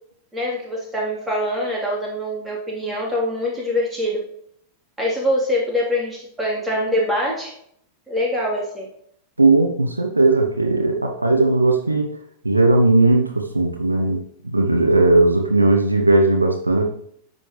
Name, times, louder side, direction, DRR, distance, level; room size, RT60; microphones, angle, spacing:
voice 1, 0.3-4.3 5.0-7.5 8.1-8.9, left 1 dB, 10° right, -3 dB, 3.5 m, -24 dB
voice 2, 9.4-12.1 12.4-16.8, right 2 dB, 85° right, 3 dB, 0.9 m, -17 dB
10.5 x 7.5 x 3.2 m, 0.69 s
figure-of-eight pair, 90°, 0 cm